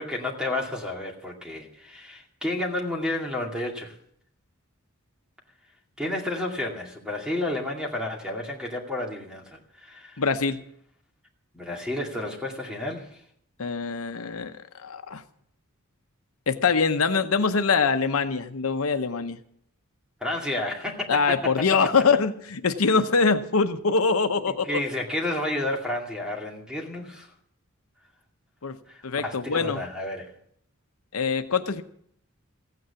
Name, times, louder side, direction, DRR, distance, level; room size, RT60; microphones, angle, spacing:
voice 1, 0.0-4.0 6.0-10.2 11.5-13.2 20.2-21.8 24.5-27.3 28.9-30.3, left 1 dB, 5° right, 0 dB, 2.3 m, -31 dB
voice 2, 10.2-10.6 13.6-15.2 16.5-19.4 21.1-24.8 28.6-28.8 29.0-29.8 31.1-31.8, left 5 dB, 80° left, 8 dB, 0.9 m, -24 dB
15.5 x 9.4 x 7.0 m, 0.67 s
head